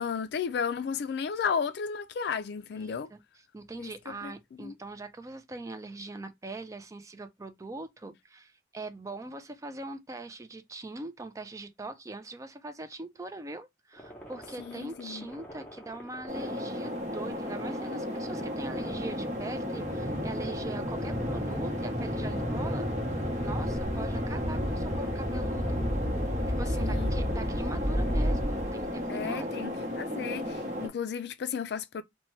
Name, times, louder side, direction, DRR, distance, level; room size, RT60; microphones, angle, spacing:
voice 1, 0.0-3.1 3.8-4.3 4.6-4.7 14.6-15.3 26.8-27.1 29.1-32.0, left 6 dB, 60° left, 0.3 m, -34 dB
voice 2, 2.7-3.2 3.5-23.1 23.4-25.8 26.6-29.5, right 2 dB, 15° right, 0.3 m, -42 dB
sound 1, 14.0-29.1, equal, 10° left, 0.8 m, -34 dB
sound 2, 16.3-30.9, left 1 dB, 40° right, 0.9 m, -34 dB
2.8 x 2.2 x 3.1 m
head